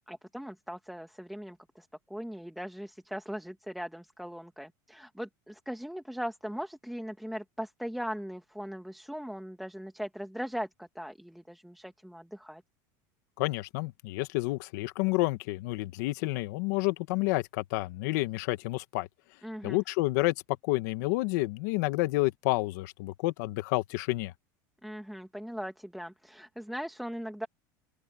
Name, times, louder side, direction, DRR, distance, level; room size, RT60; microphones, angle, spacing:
voice 1, 0.1-12.6 19.4-19.8 24.8-27.5, equal, ahead, 1.6 m, -39 dB
voice 2, 13.4-19.1 19.6-20.3 20.6-24.3, left 21 dB, 70° left, 1.7 m, -29 dB
open air
supercardioid pair, 155°, 10 cm